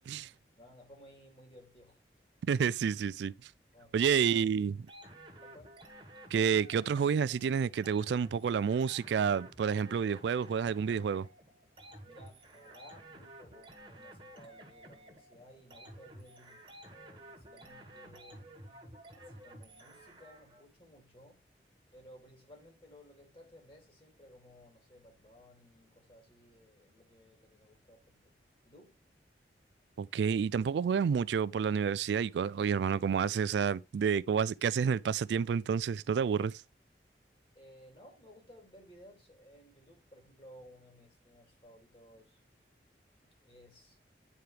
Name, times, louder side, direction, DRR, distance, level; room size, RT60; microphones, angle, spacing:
voice 1, 0.6-2.0 3.7-4.5 5.4-5.8 12.0-18.6 19.2-21.4 21.9-28.3 28.6-29.0 37.5-42.4 43.2-44.0, equal, 30° left, 2.6 m, -58 dB
voice 2, 2.4-3.5 3.9-4.9 6.3-11.3 30.0-36.5, right 7 dB, 80° right, 0.3 m, -29 dB
sound 1, 4.9-20.6, right 1 dB, 30° right, 1.6 m, -53 dB
9.0 x 4.8 x 3.3 m
head